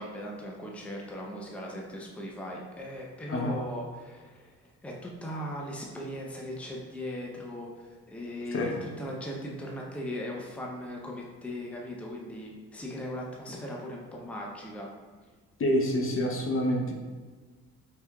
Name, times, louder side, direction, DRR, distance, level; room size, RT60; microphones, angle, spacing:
voice 1, 0.0-4.5 4.8-14.9, equal, 5° left, -2 dB, 0.5 m, -38 dB
voice 2, 15.6-16.9, equal, 45° left, 1 dB, 0.7 m, -27 dB
4.6 x 3.3 x 2.3 m, 1.4 s
cardioid pair, 90°, 30 cm